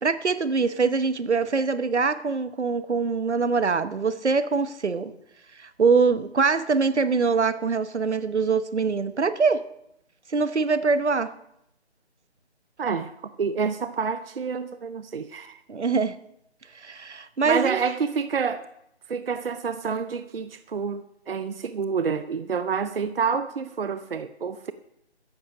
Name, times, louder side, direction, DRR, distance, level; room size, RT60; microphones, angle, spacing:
voice 1, 0.0-5.1 5.6-9.6 10.3-11.3 15.7-16.2 16.8-17.8, right 4 dB, 80° right, 13 dB, 1.1 m, -23 dB
voice 2, 12.8-13.1 13.4-15.6 17.4-18.6 19.1-24.7, right 6 dB, 55° right, 12 dB, 0.7 m, -28 dB
13.5 x 10.5 x 5.1 m, 0.78 s
figure-of-eight pair, 160°, 34 cm